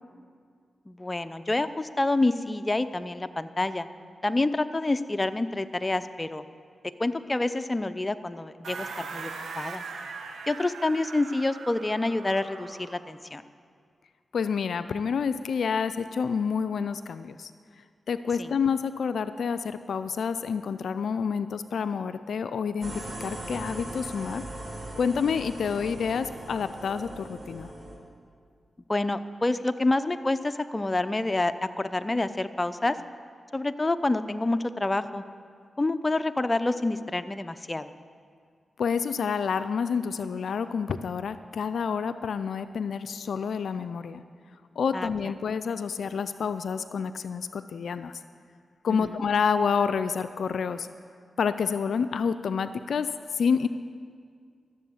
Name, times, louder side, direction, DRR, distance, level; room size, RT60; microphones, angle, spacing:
voice 1, 0.9-3.9 4.2-6.4 7.0-9.3 9.6-9.8 10.5-13.4 18.4-18.5 28.9-33.0 33.5-35.2 35.8-37.9 44.9-45.1 48.9-49.2, left 2 dB, 30° left, 11 dB, 0.6 m, -27 dB
sound 1, 8.6-13.1, right 4 dB, 85° right, 1.0 m, -40 dB
voice 2, 14.3-17.5 18.1-24.5 25.0-27.7 38.8-44.2 44.8-48.1 48.8-50.9 51.4-53.7, left 6 dB, 80° left, 12 dB, 0.3 m, -28 dB
sound 2, 22.8-28.0, right 1 dB, 50° right, 2.5 m, -39 dB
13.5 x 7.5 x 7.1 m, 2.1 s
cardioid pair, 45°, 0 cm